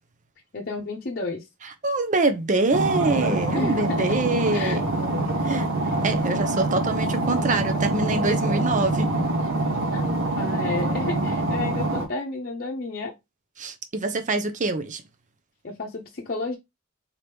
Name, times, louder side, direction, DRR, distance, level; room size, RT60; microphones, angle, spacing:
voice 1, 0.5-1.4 3.5-4.1 4.5-4.8 9.9-10.0 10.3-13.1 15.6-16.5, left 3 dB, 50° left, 0.8 m, -31 dB
voice 2, 1.8-4.9 5.4-5.7 6.0-9.1 13.6-15.0, right 3 dB, 40° right, 0.7 m, -25 dB
sound 1, 2.7-12.1, right 2 dB, 90° right, 1.2 m, -25 dB
4.1 x 3.0 x 3.4 m
head